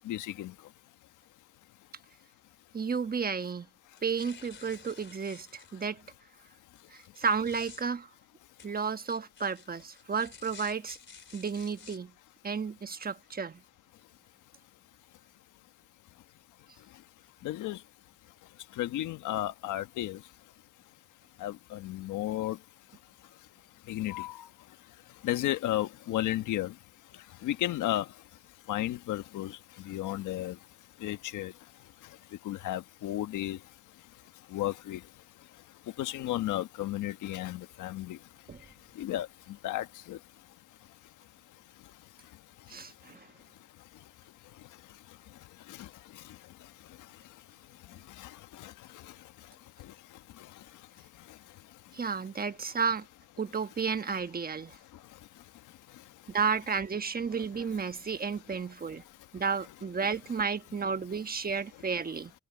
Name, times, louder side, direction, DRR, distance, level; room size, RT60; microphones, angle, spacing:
voice 1, 0.0-0.5 17.4-17.8 18.8-20.2 21.4-22.6 23.9-24.5 25.2-26.7 27.4-28.1 28.7-30.6 31.0-31.5 32.4-33.6 34.5-35.0 36.0-38.2 38.9-40.2 45.7-45.9 46.2-46.3 48.2-49.0 49.8-49.9, left 14 dB, 85° left, 1.5 m, -33 dB
voice 2, 2.7-3.7 4.0-6.0 6.9-8.1 8.6-11.0 11.3-12.1 12.4-13.6 38.5-38.6 42.7-43.3 51.9-53.1 53.4-54.8 56.3-59.0 59.3-62.3, right 5 dB, 30° right, 1.2 m, -32 dB
sound 1, 3.9-5.9 6.7-7.8 8.6-12.0, left 6 dB, 40° left, 3.9 m, -52 dB
cardioid pair, 90°, 30 cm